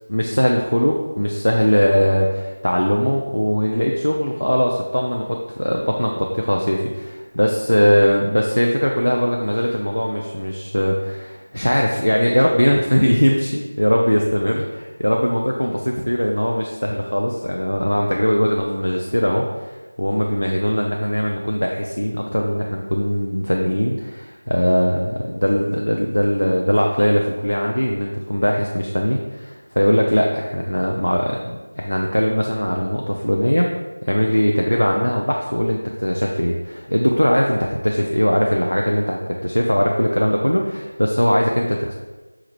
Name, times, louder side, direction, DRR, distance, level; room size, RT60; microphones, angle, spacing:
voice 1, 0.1-33.7 34.0-41.9, equal, 85° left, 0 dB, 0.4 m, -20 dB
4.5 x 2.1 x 3.0 m, 1.2 s
figure-of-eight pair, 175°, 0 cm